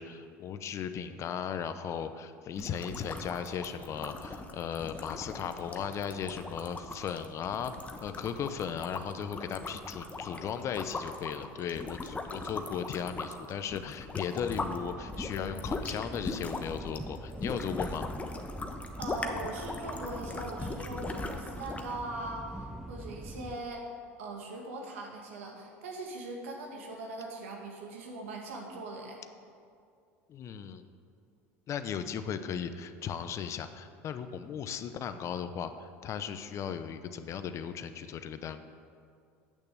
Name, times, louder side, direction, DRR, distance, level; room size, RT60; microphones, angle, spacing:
voice 1, 0.0-7.7 8.0-18.0 30.3-30.8 31.7-38.6, left 8 dB, 45° left, 10 dB, 0.7 m, -36 dB
sound 1, 2.5-14.8 15.1-22.0, left 3 dB, 20° left, 1.0 m, -40 dB
sound 2, 14.4-23.6, right 1 dB, 5° right, 0.6 m, -44 dB
voice 2, 19.0-23.9 24.2-29.2, right 2 dB, 85° right, 1 dB, 1.9 m, -40 dB
8.5 x 6.7 x 8.3 m, 2.3 s
hypercardioid pair, 85°, 7 cm